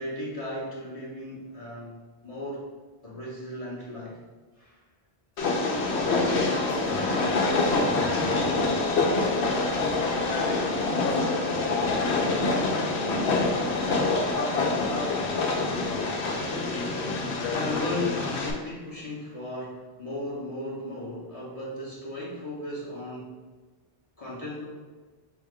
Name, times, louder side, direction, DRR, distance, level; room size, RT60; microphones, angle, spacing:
voice 1, 0.0-2.6 3.0-4.2 16.2-17.1 17.5-23.4 24.2-24.6, left 1 dB, 35° left, -6 dB, 0.9 m, -36 dB
Train, 5.4-18.5, left 3 dB, 85° left, 0.9 m, -26 dB
voice 2, 6.0-15.0, right 2 dB, 35° right, -5 dB, 0.8 m, -39 dB
5.5 x 2.2 x 3.5 m, 1.4 s
omnidirectional pair, 1.1 m